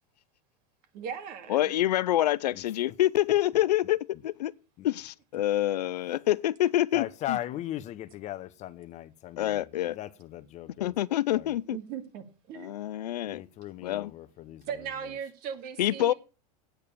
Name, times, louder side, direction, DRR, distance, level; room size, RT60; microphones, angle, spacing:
voice 1, 0.9-1.7 11.7-12.8 14.7-16.1, right 8 dB, 50° right, 2.4 m, -38 dB
voice 2, 1.5-4.5 4.8-7.4 9.4-10.0 10.8-11.8 12.5-13.4 13.8-14.1 15.8-16.1, left 13 dB, 85° left, 0.6 m, -27 dB
voice 3, 6.9-10.9 11.3-11.5 13.3-14.6, left 13 dB, 35° left, 0.8 m, -38 dB
9.0 x 6.7 x 8.3 m
supercardioid pair, 120°, 20 cm